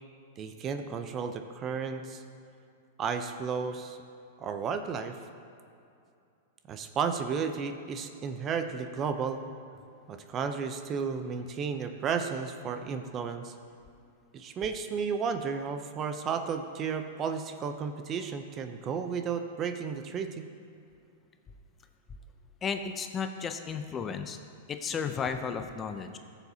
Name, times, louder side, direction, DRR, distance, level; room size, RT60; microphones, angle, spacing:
voice 1, 0.4-2.2 3.0-4.0 4.4-5.2 6.7-9.4 10.1-13.5 14.3-20.5, right 6 dB, 30° right, 8 dB, 0.6 m, -33 dB
voice 2, 22.6-24.4 24.7-26.2, left 6 dB, 20° left, 7 dB, 0.5 m, -34 dB
14.5 x 7.1 x 2.8 m, 2.5 s
hypercardioid pair, 135°, 0 cm